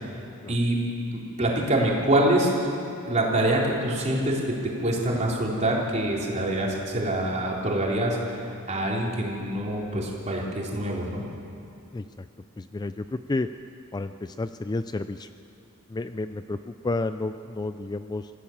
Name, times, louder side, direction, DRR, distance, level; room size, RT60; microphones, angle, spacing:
voice 1, 1.1-2.5 3.1-11.3, right 1 dB, 35° right, -3 dB, 3.8 m, -25 dB
voice 2, 11.9-12.3 12.6-13.5 13.9-15.3 15.9-18.3, left 2 dB, 20° left, 10 dB, 0.4 m, -31 dB
25.5 x 15.5 x 7.3 m, 2.6 s
head